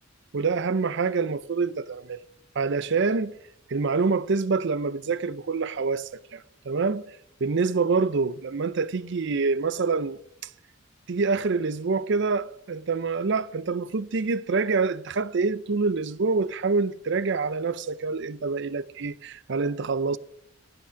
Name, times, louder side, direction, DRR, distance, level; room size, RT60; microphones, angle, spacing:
voice 1, 0.3-2.2 2.6-3.4 3.7-7.0 7.4-10.2 11.1-20.2, right 4 dB, 60° right, 0.5 m, -26 dB
15.5 x 5.9 x 9.9 m
head